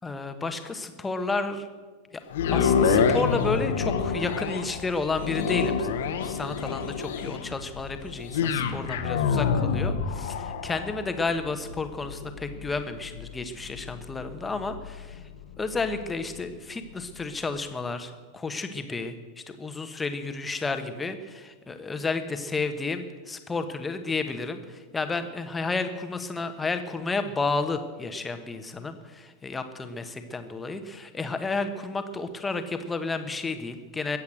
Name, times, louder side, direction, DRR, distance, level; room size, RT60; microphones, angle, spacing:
voice 1, 0.0-1.7 2.1-2.2 2.5-5.9 6.2-15.2 15.6-19.1 19.5-34.2, left 3 dB, 15° left, 8 dB, 1.3 m, -31 dB
sound 1, 2.3-16.5 17.0-17.1, left 6 dB, 60° left, 1.3 m, -28 dB
22.0 x 8.6 x 6.5 m, 1.4 s
figure-of-eight pair, 90°, 0 cm